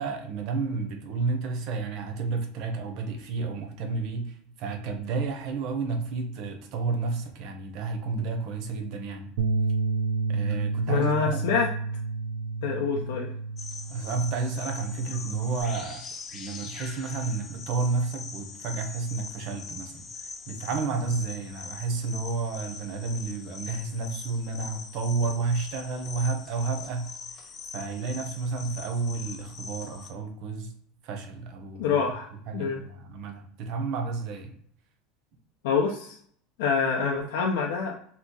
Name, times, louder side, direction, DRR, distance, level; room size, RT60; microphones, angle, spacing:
voice 1, 0.0-9.3 10.3-11.4 12.9-13.0 13.9-16.0 16.3-30.7 31.0-32.0 32.5-34.6, right 4 dB, 55° right, 5 dB, 0.6 m, -31 dB
Bass guitar, 9.4-15.6, right 3 dB, 90° right, 0.3 m, -30 dB
voice 2, 10.9-11.7 12.6-13.3 31.8-32.8 35.6-36.2 36.6-38.0, left 6 dB, 85° left, -1 dB, 0.4 m, -26 dB
sound 1, 13.6-30.1, left 5 dB, 30° left, 0.5 m, -42 dB
2.7 x 2.3 x 3.7 m, 0.63 s
supercardioid pair, 150°, 0 cm